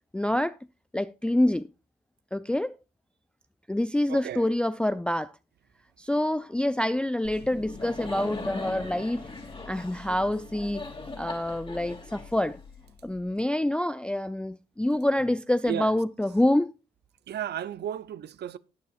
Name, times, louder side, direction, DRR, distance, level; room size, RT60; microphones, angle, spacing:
voice 1, 0.1-0.6 0.9-1.7 2.3-2.8 3.7-5.3 6.0-9.2 9.7-10.8 11.2-12.6 13.0-16.7, left 1 dB, 5° left, 0.4 m, -26 dB
voice 2, 4.1-4.5 15.6-16.0 17.3-18.6, right 10 dB, 60° right, 0.6 m, -34 dB
Laughter, 7.3-13.1, left 3 dB, 25° left, 2.6 m, -40 dB
13.5 x 9.3 x 2.5 m
hypercardioid pair, 45°, 20 cm